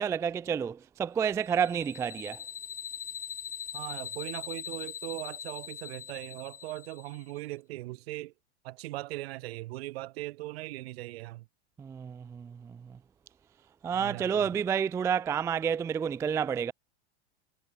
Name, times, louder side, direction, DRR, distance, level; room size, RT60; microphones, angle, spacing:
voice 1, 0.0-2.4 11.8-12.6 13.8-16.7, right 7 dB, 10° right, 0.3 m, -29 dB
sound 1, 1.4-7.3, left 8 dB, 25° left, 7.6 m, -41 dB
voice 2, 3.7-8.3 8.6-11.5 13.9-14.6, right 18 dB, 65° right, 2.2 m, -39 dB
hypercardioid pair, 110°, 33 cm